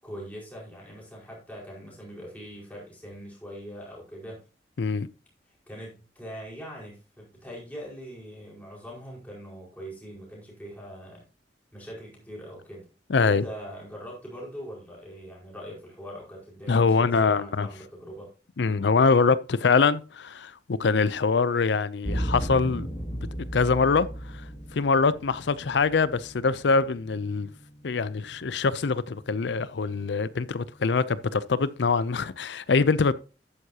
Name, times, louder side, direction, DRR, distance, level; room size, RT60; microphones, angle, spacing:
voice 1, 0.0-4.4 5.5-11.2 11.7-12.9 13.2-18.3, equal, 10° left, 4.9 m, -42 dB
voice 2, 13.1-13.5 16.7-17.7 18.6-22.9 23.5-24.1 24.3-24.4 24.7-27.5 27.8-33.1, left 4 dB, 70° left, 0.5 m, -24 dB
sound 1, 22.0-31.1, equal, 30° left, 2.2 m, -37 dB
11.5 x 9.3 x 2.8 m
head